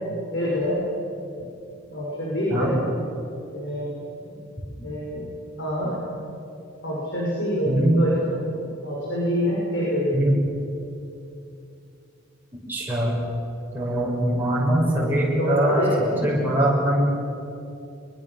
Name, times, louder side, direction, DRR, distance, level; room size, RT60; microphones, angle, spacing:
voice 1, 0.3-0.8 1.9-2.7 3.5-3.9 4.8-5.2 5.6-6.0 6.8-8.4 8.8-10.1 14.8-16.3, equal, 70° left, -5 dB, 6.5 m, -26 dB
voice 2, 7.6-8.0 10.1-10.3 12.7-13.2 13.7-15.8 16.2-17.1, right 1 dB, 10° right, -4 dB, 6.2 m, -22 dB
24.0 x 23.5 x 7.4 m, 2.7 s
head